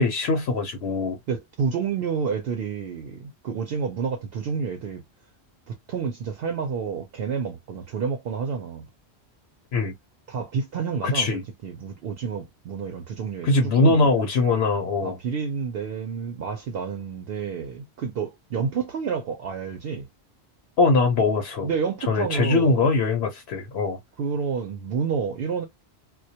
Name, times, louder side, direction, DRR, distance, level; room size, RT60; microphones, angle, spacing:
voice 1, 0.0-1.2 9.7-9.9 11.0-11.4 13.4-15.2 20.8-21.7 22.1-24.0, left 3 dB, 70° left, 0.9 m, -22 dB
voice 2, 1.3-5.0 5.7-8.9 10.3-14.1 15.0-20.1 21.6-22.9 24.2-25.7, right 6 dB, 70° right, 0.7 m, -29 dB
2.2 x 2.2 x 2.7 m
omnidirectional pair, 1.1 m